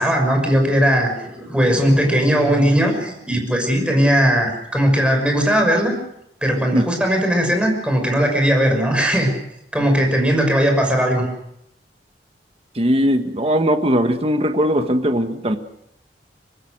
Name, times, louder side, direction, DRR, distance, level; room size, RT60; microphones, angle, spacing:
voice 1, 0.0-5.9 6.4-9.3 9.7-11.2, equal, 5° right, 3 dB, 5.9 m, -18 dB
voice 2, 12.7-15.6, equal, 35° right, 7 dB, 1.5 m, -19 dB
25.0 x 20.0 x 6.5 m, 0.78 s
head